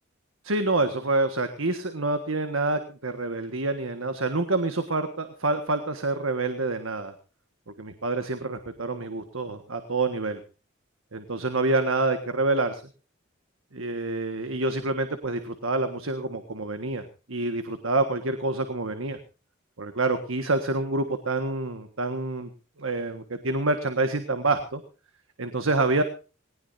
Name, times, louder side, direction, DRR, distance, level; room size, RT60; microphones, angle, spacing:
voice 1, 0.4-7.1 7.8-10.4 11.1-12.8 13.7-17.0 17.3-19.2 19.8-22.5 22.8-24.8 25.4-26.0, right 2 dB, 90° right, 8 dB, 1.6 m, -27 dB
19.5 x 19.0 x 2.7 m, 0.34 s
head